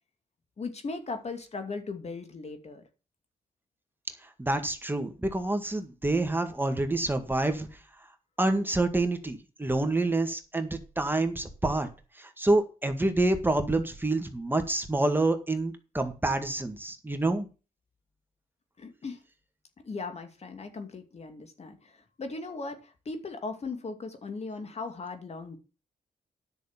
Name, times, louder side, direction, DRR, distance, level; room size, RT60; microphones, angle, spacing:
voice 1, 0.6-2.8 18.8-19.2 19.8-25.6, left 3 dB, 50° left, 7 dB, 2.5 m, -38 dB
voice 2, 4.4-7.7 8.4-11.9 12.2-17.5, right 2 dB, 15° right, 7 dB, 1.9 m, -27 dB
11.0 x 6.3 x 7.3 m, 0.33 s
cardioid pair, 75°, 14 cm